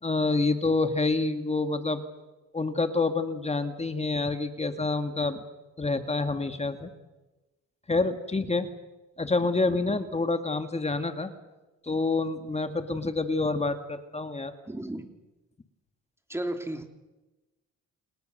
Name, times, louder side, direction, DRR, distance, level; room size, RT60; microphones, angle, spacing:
voice 1, 0.0-2.0 2.5-5.4 5.8-6.9 7.9-8.7 9.2-11.3 11.8-14.5, left 3 dB, 20° left, 8 dB, 2.0 m, -27 dB
voice 2, 14.6-15.0 16.3-16.9, right 1 dB, 10° right, 6 dB, 3.1 m, -33 dB
28.5 x 20.0 x 6.7 m, 1.1 s
cardioid pair, 90°, 30 cm